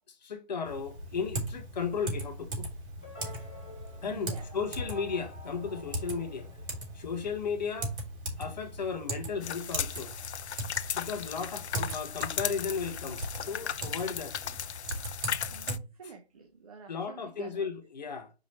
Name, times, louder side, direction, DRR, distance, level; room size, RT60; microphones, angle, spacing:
voice 1, 0.1-2.7 4.0-6.5 6.9-8.0 8.4-10.1 10.9-14.4 16.9-18.3, left 5 dB, 40° left, 1.4 m, -35 dB
Typing, 0.6-15.7, right 1 dB, 50° right, 3.3 m, -39 dB
sound 1, 3.0-7.3, left 1 dB, 10° left, 0.5 m, -50 dB
voice 2, 4.1-4.5 15.5-17.7, right 5 dB, 35° right, 0.9 m, -48 dB
sound 2, 9.4-15.8, left 9 dB, 80° left, 0.5 m, -36 dB
5.1 x 4.7 x 4.3 m
hypercardioid pair, 160°, 33 cm